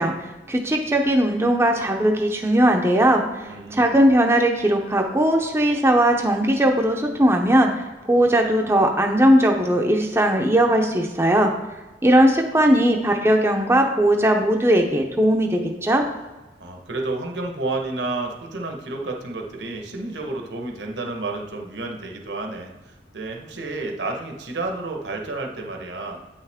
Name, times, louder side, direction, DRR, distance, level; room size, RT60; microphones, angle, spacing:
voice 1, 0.0-7.7 8.1-11.5 12.0-16.0, right 1 dB, 15° right, 2 dB, 0.5 m, -19 dB
voice 2, 3.4-4.0 16.6-26.2, right 2 dB, 75° right, 2 dB, 1.1 m, -31 dB
8.6 x 5.6 x 3.5 m, 1.2 s
head